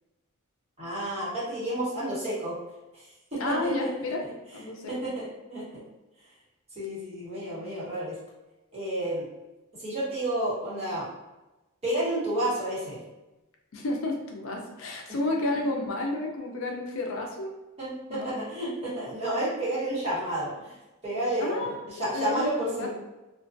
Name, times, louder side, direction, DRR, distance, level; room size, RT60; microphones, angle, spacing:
voice 1, 0.8-2.6 2.9-3.0 3.3-3.9 4.9-5.8 6.8-8.2 8.7-9.3 9.7-11.1 11.8-13.0 15.1-15.2 17.8-20.8 21.0-22.9, right 1 dB, 30° right, -9 dB, 1.0 m, -30 dB
voice 2, 3.4-4.2 4.5-4.9 13.7-17.5 18.1-18.3 21.4-22.9, left 2 dB, 65° left, 1 dB, 0.4 m, -31 dB
2.4 x 2.2 x 2.5 m, 1.0 s
head